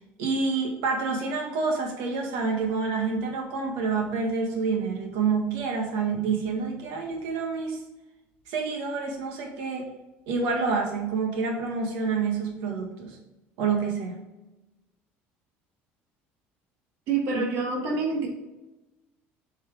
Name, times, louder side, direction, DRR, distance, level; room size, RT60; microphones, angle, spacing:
voice 1, 0.2-7.8 8.5-9.8 10.3-13.2 13.6-14.2 17.3-17.4, right 4 dB, 90° right, 1 dB, 1.7 m, -28 dB
voice 2, 17.1-18.3, right 4 dB, 55° right, 0 dB, 1.6 m, -27 dB
8.1 x 4.7 x 3.5 m, 1.0 s
cardioid pair, 170°, 5 cm